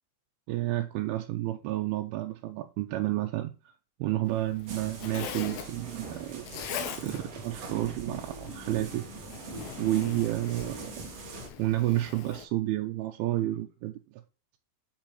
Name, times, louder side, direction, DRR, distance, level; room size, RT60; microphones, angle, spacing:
voice 1, 0.5-3.5 4.0-9.1 9.8-10.9 11.6-14.2, right 15 dB, 90° right, 2.5 m, -31 dB
Zipper (clothing), 4.2-12.4, left 9 dB, 90° left, 2.7 m, -42 dB
sound 1, 4.7-11.5, right 4 dB, 50° right, 2.1 m, -41 dB
8.6 x 6.3 x 3.0 m
omnidirectional pair, 4.3 m